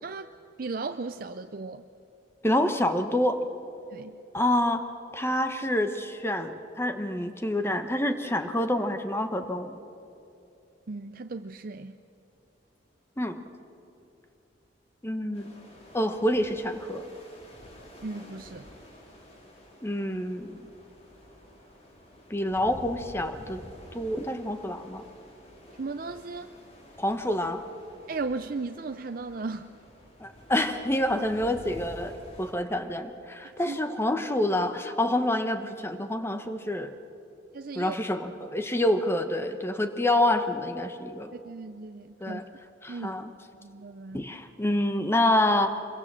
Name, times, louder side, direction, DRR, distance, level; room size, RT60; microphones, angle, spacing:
voice 1, 0.0-1.9 3.9-4.2 10.9-12.0 18.0-18.7 25.7-26.5 28.1-29.7 33.6-33.8 37.5-38.0 38.4-38.5 41.3-42.4 42.9-43.1 43.6-44.3, right 3 dB, 50° right, 9 dB, 0.5 m, -36 dB
voice 2, 2.4-3.4 4.3-4.9 5.1-9.8 13.2-13.4 15.0-15.6 15.9-17.1 19.8-20.6 22.3-23.6 23.9-25.0 27.0-27.6 30.2-36.9 37.8-41.3 42.2-42.4 42.8-43.3 44.1-45.8, left 1 dB, 15° left, 8 dB, 1.1 m, -27 dB
sound 1, 15.3-32.5, equal, 35° left, 3.6 m, -50 dB
25.0 x 22.5 x 7.5 m, 2.8 s
head